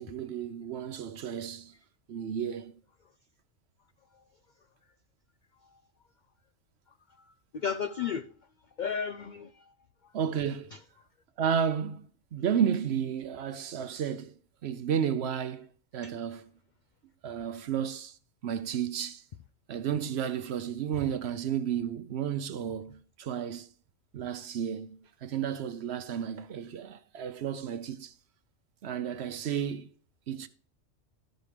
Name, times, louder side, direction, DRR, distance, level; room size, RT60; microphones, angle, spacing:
voice 1, 0.0-1.7 2.1-2.8 10.1-10.7 11.4-14.3 14.6-16.4 17.2-18.2 18.4-19.2 19.7-23.7 24.1-28.1 28.8-29.9 30.3-30.5, right 8 dB, 60° right, 0.8 m, -32 dB
voice 2, 7.1-8.3 8.8-9.7 10.0-10.1 10.7-10.8 16.0-16.1, left 7 dB, 75° left, 0.4 m, -35 dB
12.0 x 5.2 x 4.9 m
omnidirectional pair, 1.3 m